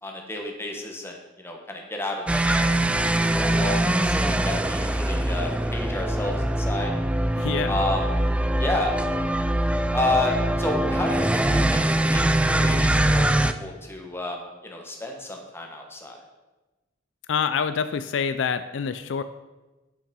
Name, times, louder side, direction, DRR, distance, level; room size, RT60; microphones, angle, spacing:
voice 1, 0.0-3.1 3.3-6.9 7.7-8.0 8.6-8.9 9.9-16.2, left 2 dB, 15° left, 1 dB, 1.3 m, -31 dB
sound 1, 2.3-13.5, right 1 dB, 5° right, 0.3 m, -23 dB
voice 2, 7.4-7.8 17.3-19.2, left 6 dB, 70° left, 11 dB, 0.4 m, -26 dB
8.7 x 5.8 x 5.3 m, 1.1 s
head